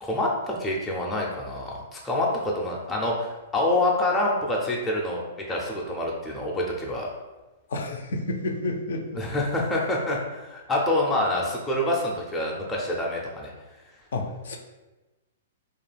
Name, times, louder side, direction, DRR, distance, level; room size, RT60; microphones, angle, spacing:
voice 1, 0.0-7.1 9.2-13.5, left 1 dB, 10° left, -4 dB, 0.4 m, -26 dB
voice 2, 7.7-9.2 14.1-14.6, left 2 dB, 75° left, 4 dB, 0.4 m, -30 dB
2.4 x 2.2 x 3.3 m, 1.1 s
hypercardioid pair, 130°, 0 cm